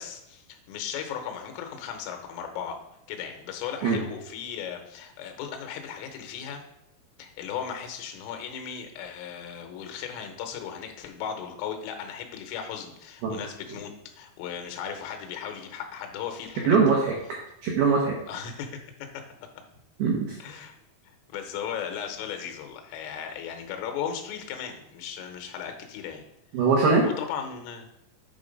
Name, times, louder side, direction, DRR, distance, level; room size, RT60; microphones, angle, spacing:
voice 1, 0.0-2.8 3.1-6.6 7.2-16.8 18.3-19.2 20.4-20.8 21.0-26.2 27.0-27.9, left 8 dB, 90° left, 5 dB, 3.5 m, -36 dB
voice 2, 16.7-17.1 17.6-18.1 20.0-20.3 26.5-27.1, right 4 dB, 80° right, -1 dB, 2.2 m, -21 dB
8.2 x 3.9 x 5.2 m, 0.80 s
omnidirectional pair, 5.6 m